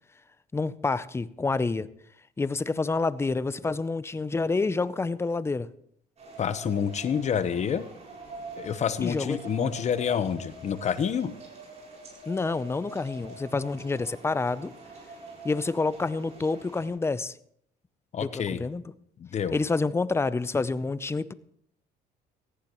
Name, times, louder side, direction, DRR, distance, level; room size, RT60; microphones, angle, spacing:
voice 1, 0.5-1.9 2.4-5.7 9.0-9.4 12.3-14.7 15.4-17.4 18.2-18.8 19.5-21.3, left 3 dB, 15° left, 16 dB, 0.5 m, -28 dB
sound 1, 6.2-16.9, right 2 dB, 40° right, 7.2 m, -45 dB
voice 2, 6.4-7.8 8.6-11.3 18.1-18.6 19.2-19.6, left 7 dB, 45° left, 13 dB, 1.0 m, -28 dB
18.0 x 14.5 x 3.1 m, 0.69 s
cardioid pair, 110°, 17 cm